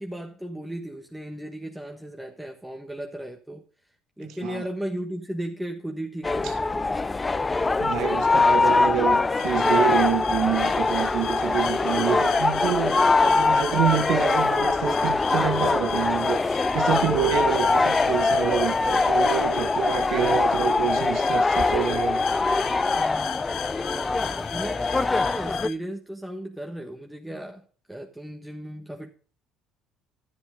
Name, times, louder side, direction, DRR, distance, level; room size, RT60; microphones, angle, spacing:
voice 1, 0.0-3.6 4.2-7.5 23.0-29.1, right 1 dB, 5° right, 1.3 m, -36 dB
voice 2, 4.2-4.6 6.4-6.5 7.8-12.9 13.2-22.2, right 10 dB, 75° right, 1.6 m, -27 dB
sound 1, 6.2-25.7, left 3 dB, 20° left, 0.4 m, -23 dB
sound 2, 9.4-25.8, left 12 dB, 75° left, 0.7 m, -37 dB
12.5 x 7.9 x 3.8 m
cardioid pair, 105°, 0 cm